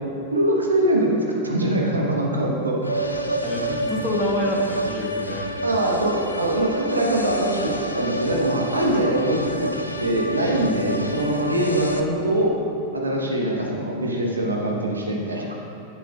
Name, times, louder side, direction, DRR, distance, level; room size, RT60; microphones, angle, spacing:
voice 1, 0.3-1.2 1.4-2.8 5.6-9.7 10.0-12.5 12.9-15.5, right 1 dB, 80° right, -1 dB, 1.1 m, -23 dB
sound 1, 2.8-12.0, right 1 dB, 85° left, 0.5 m, -29 dB
voice 2, 3.0-5.8, left 1 dB, 15° left, -2 dB, 1.3 m, -28 dB
9.9 x 8.3 x 2.4 m, 2.8 s
figure-of-eight pair, 90°, 0 cm